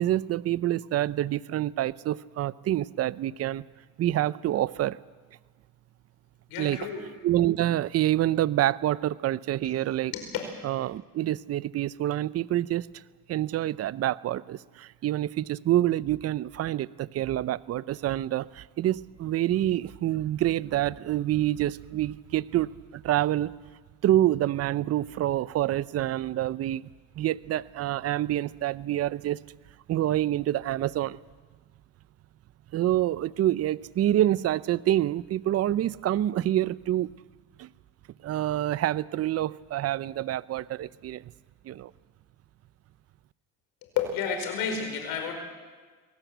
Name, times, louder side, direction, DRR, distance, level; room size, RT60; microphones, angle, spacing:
voice 1, 0.0-3.6 4.0-5.0 6.6-6.8 7.2-10.1 10.6-13.0 13.3-23.5 24.0-26.9 27.2-29.4 29.9-31.2 32.7-37.1 37.6-37.7 38.2-41.2 41.6-41.9, right 13 dB, 40° right, 18 dB, 0.7 m, -27 dB
voice 2, 6.5-7.0 9.6-9.7 10.1-10.3 43.9-45.3, left 7 dB, 75° left, 4 dB, 5.0 m, -31 dB
24.0 x 18.0 x 8.2 m, 1.4 s
supercardioid pair, 100°, 37 cm